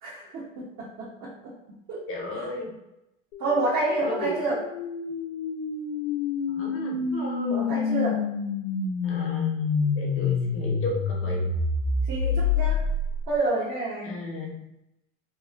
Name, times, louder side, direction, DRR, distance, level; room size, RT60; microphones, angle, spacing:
voice 1, 0.0-1.5 1.9-2.0 2.3-2.4 3.4-4.6 7.5-8.2 12.1-12.8 13.3-14.2, right 2 dB, 50° right, -5 dB, 0.8 m, -29 dB
voice 2, 2.1-2.7 4.0-4.6 6.5-7.7 9.0-9.7 10.0-11.4 14.0-14.7, left 1 dB, 35° left, -1 dB, 0.9 m, -34 dB
sound 1, 3.3-13.4, left 5 dB, 60° left, 0.5 m, -28 dB
2.9 x 2.0 x 2.3 m, 0.88 s
hypercardioid pair, 85°, 39 cm